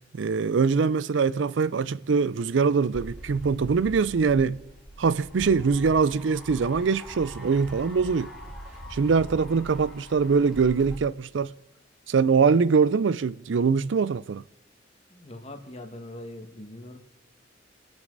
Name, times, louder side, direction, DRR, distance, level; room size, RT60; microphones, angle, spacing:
voice 1, 0.1-4.6 5.0-8.3 8.9-11.5 12.1-14.4, right 5 dB, 70° right, 0.4 m, -23 dB
sound 1, 2.9-11.0, equal, ahead, 2.8 m, -42 dB
voice 2, 15.1-17.0, left 1 dB, 35° left, 1.6 m, -41 dB
26.0 x 9.5 x 3.9 m
head